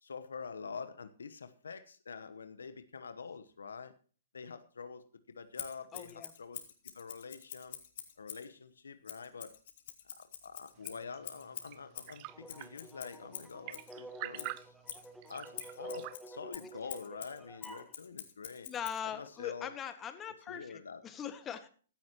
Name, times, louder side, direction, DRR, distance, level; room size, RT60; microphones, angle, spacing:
voice 1, 0.0-3.9 4.3-6.6 6.9-7.8 8.2-9.5 10.0-14.7 15.3-18.7 19.0-19.7 20.5-21.0, left 5 dB, 80° left, 11 dB, 1.1 m, -46 dB
Scissors, 5.5-8.5 9.0-13.9 14.3-19.0, left 10 dB, 60° left, 2.9 m, -47 dB
voice 2, 5.9-6.3 18.6-21.7, left 8 dB, 20° left, 9 dB, 1.8 m, -41 dB
sound 1, 10.7-16.2, right 19 dB, 40° right, 0.6 m, -48 dB
sound 2, 12.3-17.9, right 2 dB, ahead, 1.5 m, -50 dB
16.0 x 13.0 x 3.0 m, 0.41 s
hypercardioid pair, 120°, 0 cm